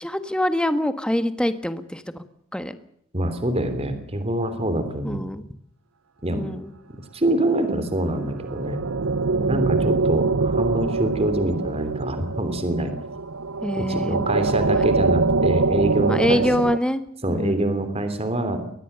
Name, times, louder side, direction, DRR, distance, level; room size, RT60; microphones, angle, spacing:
voice 1, 0.0-2.2 2.5-2.7 5.0-5.4 6.3-6.7 9.4-9.9 13.6-14.3 14.7-14.8 16.1-17.0 17.3-17.7, equal, 5° left, 10 dB, 1.5 m, -25 dB
voice 2, 3.1-5.2 6.2-6.4 7.1-8.8 9.5-12.9 13.8-16.4 17.2-18.6, right 1 dB, 30° right, 9 dB, 3.3 m, -25 dB
sound 1, 7.9-16.8, right 3 dB, 85° right, 0.8 m, -24 dB
23.5 x 19.0 x 6.9 m, 0.70 s
head